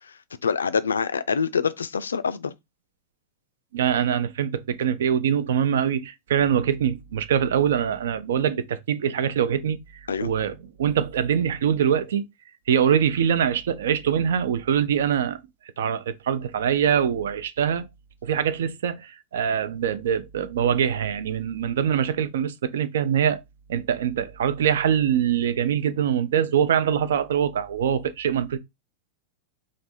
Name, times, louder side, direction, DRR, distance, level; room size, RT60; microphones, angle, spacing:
voice 1, 0.4-2.5 10.1-10.3, left 6 dB, 70° left, 0.3 m, -25 dB
voice 2, 3.7-9.8 10.2-12.2 12.7-15.4 15.8-17.9 18.2-23.4 23.7-28.6, right 8 dB, 60° right, 0.4 m, -23 dB
3.3 x 2.5 x 4.1 m
figure-of-eight pair, 90°, 0 cm